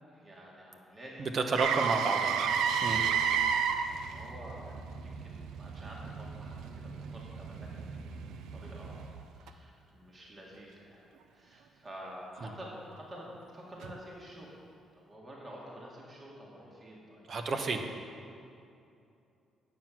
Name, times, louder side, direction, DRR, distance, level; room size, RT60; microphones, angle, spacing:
voice 1, 0.1-1.6 3.0-8.1 8.5-11.0 11.3-14.6 15.0-17.3, equal, 35° right, -3 dB, 2.0 m, -49 dB
voice 2, 1.2-2.4 2.8-3.0 17.3-17.8, right 3 dB, 50° right, 5 dB, 0.9 m, -30 dB
Motor vehicle (road), 1.6-9.5 13.8-14.0, right 7 dB, 85° right, 0.5 m, -33 dB
9.4 x 7.5 x 6.0 m, 2.6 s
cardioid pair, 90°, 0 cm